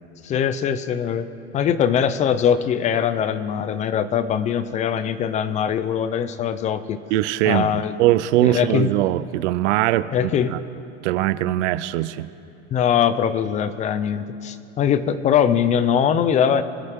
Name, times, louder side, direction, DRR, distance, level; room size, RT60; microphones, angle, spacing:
voice 1, 0.2-1.3 1.5-7.0 7.5-8.0 8.4-8.9 10.1-10.5 12.7-16.6, left 8 dB, 20° left, 13 dB, 0.4 m, -21 dB
voice 2, 7.1-10.1 10.5-10.6 11.0-12.3, right 15 dB, 80° right, 15 dB, 0.6 m, -21 dB
25.5 x 9.9 x 3.7 m, 2.7 s
supercardioid pair, 150°, 35 cm